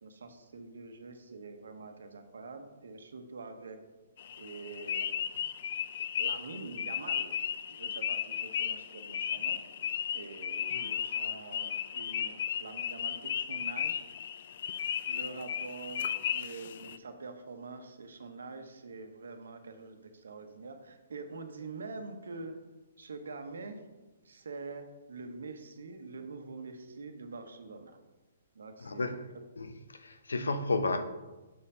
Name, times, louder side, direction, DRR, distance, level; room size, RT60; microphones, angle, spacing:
voice 1, 0.0-3.8 4.4-5.1 6.2-7.4 7.7-9.6 10.1-14.0 15.1-16.0 16.3-22.6 23.0-23.8 24.2-27.9 28.5-29.1, right 3 dB, 80° right, 1.0 m, -45 dB
sound 1, 4.2-17.0, left 9 dB, 55° left, 0.4 m, -35 dB
voice 2, 28.8-29.2 29.6-31.0, left 3 dB, 90° left, 0.7 m, -32 dB
6.7 x 4.2 x 5.5 m
hypercardioid pair, 140°, 0 cm